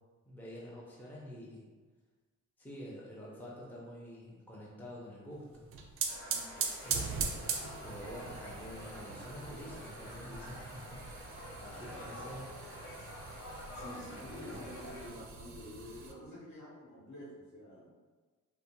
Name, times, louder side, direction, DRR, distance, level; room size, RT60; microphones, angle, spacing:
voice 1, 0.2-1.6 2.6-5.7 6.8-7.4 7.8-12.5, equal, 5° left, -5 dB, 0.6 m, -48 dB
sound 1, 5.5-16.1, right 5 dB, 45° right, 0.4 m, -41 dB
sound 2, 6.1-15.1, left 1 dB, 50° left, 0.6 m, -48 dB
voice 2, 6.3-6.6 13.0-13.1 13.7-17.9, left 1 dB, 70° left, -7 dB, 1.1 m, -49 dB
2.5 x 2.2 x 2.9 m, 1.4 s
cardioid pair, 90°, 30 cm